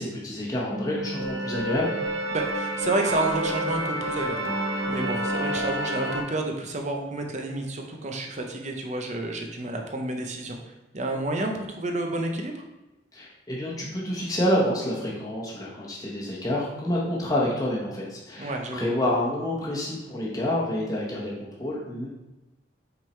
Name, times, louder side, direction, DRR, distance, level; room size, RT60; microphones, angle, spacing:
voice 1, 0.0-1.9 13.1-22.1, left 1 dB, 20° left, -5 dB, 1.1 m, -28 dB
sound 1, 0.7-6.2, right 1 dB, 70° right, 0.8 m, -29 dB
voice 2, 2.3-10.6 10.9-12.6 18.4-18.9, right 2 dB, 40° right, 3 dB, 0.7 m, -30 dB
5.7 x 3.7 x 4.4 m, 1.0 s
head